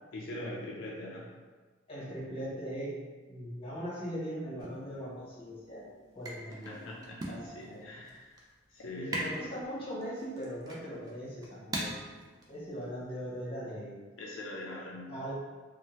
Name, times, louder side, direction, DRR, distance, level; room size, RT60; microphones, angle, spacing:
voice 1, 0.1-1.3 6.6-9.2 14.2-15.1, left 1 dB, 70° left, -4 dB, 0.4 m, -42 dB
voice 2, 1.9-3.0 3.3-5.9 6.1-6.9 7.3-7.9 8.9-12.0 12.5-14.0 15.1-15.3, equal, 30° left, -8 dB, 0.9 m, -40 dB
sound 1, 4.6-13.4, right 1 dB, 20° right, 0.3 m, -43 dB
2.7 x 2.0 x 3.0 m, 1.4 s
head